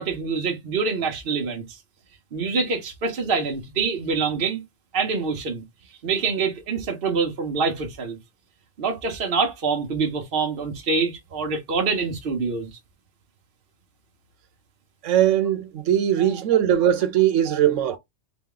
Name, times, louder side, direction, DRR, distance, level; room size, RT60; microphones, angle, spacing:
voice 1, 0.0-1.8 2.3-4.6 4.9-5.6 6.0-8.2 8.8-12.7 17.5-17.6, right 4 dB, 50° right, 1.1 m, -25 dB
voice 2, 15.0-18.0, right 10 dB, 85° right, 1.1 m, -20 dB
4.0 x 2.3 x 3.8 m
omnidirectional pair, 1.2 m